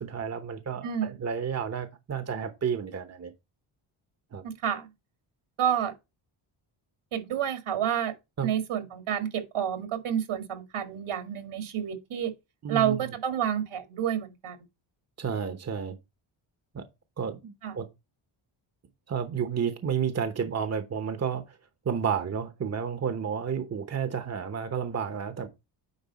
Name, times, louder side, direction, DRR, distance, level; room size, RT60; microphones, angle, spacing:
voice 1, 0.0-3.3 4.3-4.5 8.4-8.5 12.6-13.0 15.2-16.0 16.7-16.8 17.2-17.9 19.1-21.6 21.8-25.5, right 7 dB, 30° right, 0.9 m, -31 dB
voice 2, 0.8-1.2 4.4-4.9 5.6-5.9 7.1-8.1 8.4-12.3 12.7-14.6 17.6-17.8, right 9 dB, 75° right, 2.1 m, -29 dB
9.6 x 3.9 x 4.0 m
cardioid pair, 120°, 50 cm